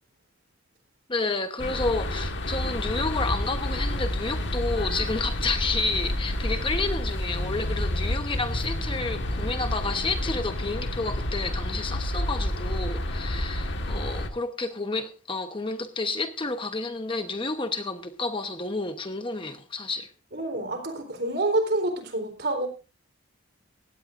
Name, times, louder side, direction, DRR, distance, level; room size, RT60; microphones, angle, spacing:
voice 1, 1.1-20.1, left 3 dB, 25° left, 1.0 m, -30 dB
sound 1, 1.6-14.3, left 1 dB, 60° left, 1.7 m, -29 dB
voice 2, 20.3-22.7, right 2 dB, 50° right, 3.9 m, -27 dB
18.5 x 16.5 x 2.6 m
head